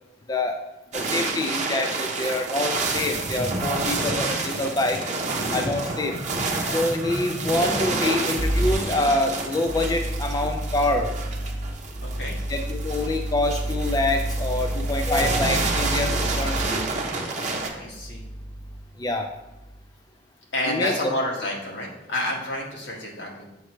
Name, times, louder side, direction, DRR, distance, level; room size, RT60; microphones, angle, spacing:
voice 1, 0.9-5.0 5.5-6.2 6.7-11.1 12.5-16.8 19.0-19.3 20.6-21.1, left 2 dB, 20° left, 4 dB, 0.3 m, -26 dB
sound 1, 0.9-17.7, right 3 dB, 40° right, 0.9 m, -29 dB
voice 2, 5.3-5.7 12.0-12.3 17.8-18.2 20.5-23.4, left 1 dB, 70° left, -2 dB, 1.6 m, -29 dB
sound 2, 8.4-8.7 9.7-16.6 17.7-18.9 19.4-19.8, right 1 dB, 40° left, 2.4 m, -29 dB
6.4 x 6.1 x 3.1 m, 1.0 s
head